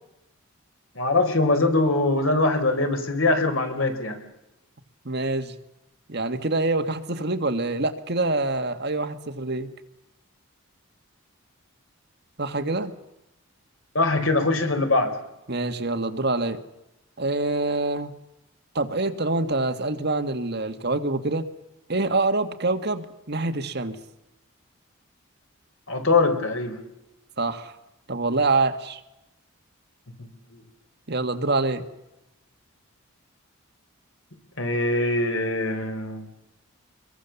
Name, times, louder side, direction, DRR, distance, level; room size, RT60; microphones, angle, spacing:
voice 1, 1.0-4.2 13.9-15.1 25.9-26.8 30.5-30.6 34.6-36.3, left 2 dB, 70° left, 6 dB, 4.3 m, -22 dB
voice 2, 5.1-5.5 6.1-9.7 12.4-12.9 15.5-16.6 17.2-18.1 18.8-21.5 21.9-24.0 27.4-27.7 28.1-29.0 31.1-31.8, right 2 dB, 50° right, 7 dB, 1.7 m, -25 dB
26.5 x 22.5 x 7.1 m, 0.92 s
head